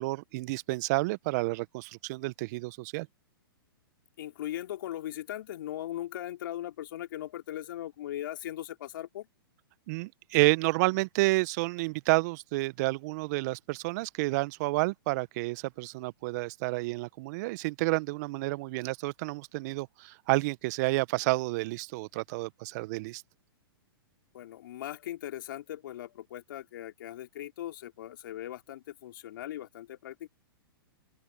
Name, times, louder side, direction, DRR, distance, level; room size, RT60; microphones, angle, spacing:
voice 1, 0.0-3.1 9.9-23.2, right 23 dB, 45° right, 1.2 m, -30 dB
voice 2, 4.2-9.3 24.3-30.3, left 12 dB, 60° left, 3.1 m, -39 dB
open air
hypercardioid pair, 115°, 13 cm